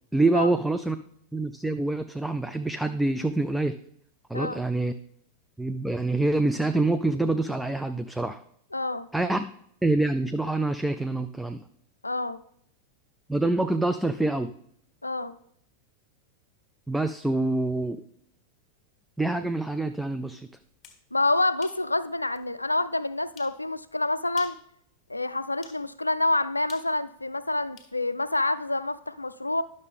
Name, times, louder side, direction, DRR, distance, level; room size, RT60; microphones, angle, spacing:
voice 1, 0.1-1.0 1.3-3.7 4.3-4.9 5.6-8.4 9.1-9.5 9.8-11.6 13.3-14.5 16.9-18.0 19.2-20.5, right 2 dB, 5° right, 9 dB, 0.3 m, -26 dB
voice 2, 4.3-4.6 8.7-9.1 12.0-12.4 15.0-15.4 21.1-24.6 25.1-29.6, left 2 dB, 85° left, 14 dB, 0.3 m, -27 dB
sound 1, 20.6-21.0 21.6-21.8 22.3-22.4 23.4-23.6 24.3-24.7 25.6-25.8 26.7-27.9, left 6 dB, 25° left, 1.5 m, -49 dB
10.5 x 6.5 x 3.5 m, 0.69 s
figure-of-eight pair, 90°, 0 cm